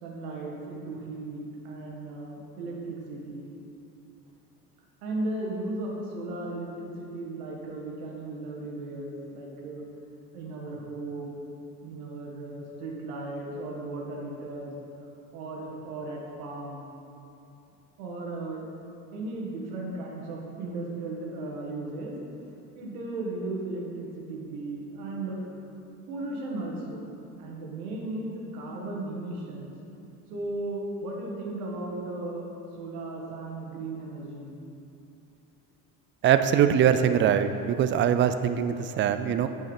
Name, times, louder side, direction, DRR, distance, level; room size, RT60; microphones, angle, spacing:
voice 1, 0.0-3.6 5.0-9.8 10.3-11.4 11.8-14.7 15.3-16.8 18.0-18.6 19.1-22.2 22.7-25.5 26.1-27.1 27.4-29.7 30.3-34.5, right 2 dB, 70° right, -2 dB, 1.6 m, -36 dB
voice 2, 36.2-39.5, right 9 dB, 25° right, 10 dB, 0.4 m, -22 dB
9.0 x 5.4 x 5.3 m, 2.7 s
figure-of-eight pair, 60°, 46 cm